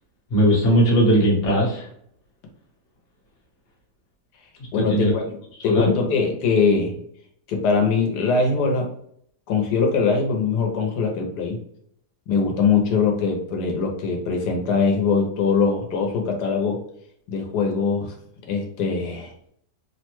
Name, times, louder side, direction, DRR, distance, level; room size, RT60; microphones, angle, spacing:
voice 1, 0.3-1.9 4.8-5.1 5.6-5.9, equal, 50° left, -2 dB, 1.1 m, -18 dB
voice 2, 4.7-5.4 5.6-6.9 7.5-8.9 9.5-11.6 12.3-16.8 17.3-18.1 18.5-19.3, left 5 dB, 90° left, 1 dB, 1.2 m, -22 dB
3.2 x 2.1 x 2.9 m, 0.66 s
omnidirectional pair, 1.8 m